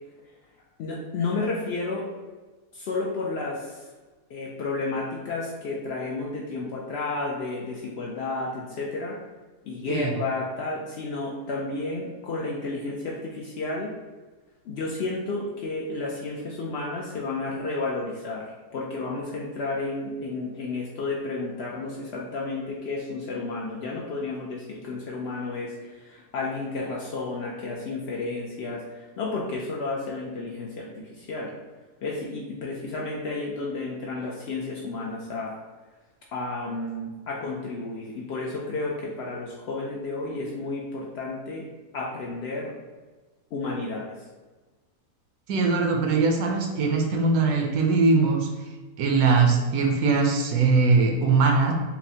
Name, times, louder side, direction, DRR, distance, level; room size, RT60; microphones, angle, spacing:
voice 1, 0.8-2.1 2.7-3.8 4.3-9.2 9.6-13.9 14.6-31.5 32.0-35.6 36.3-41.7 41.9-42.8 43.5-44.2, left 3 dB, 75° left, -3 dB, 0.5 m, -32 dB
voice 2, 45.5-48.5 49.0-51.7, right 4 dB, 75° right, 2 dB, 1.1 m, -21 dB
5.7 x 2.1 x 2.8 m, 1.3 s
omnidirectional pair, 1.6 m